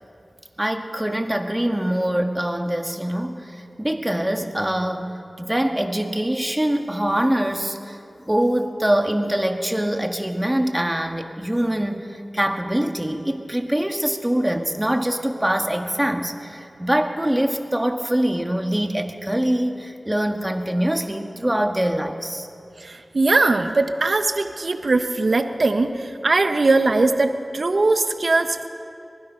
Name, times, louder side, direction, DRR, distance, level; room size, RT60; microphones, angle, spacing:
voice 1, 0.6-8.0 8.3-22.5, right 1 dB, 15° right, 4 dB, 2.0 m, -24 dB
voice 2, 22.8-28.7, right 3 dB, 65° right, 7 dB, 1.2 m, -20 dB
25.5 x 19.5 x 5.8 m, 2.6 s
cardioid pair, 45°, 0 cm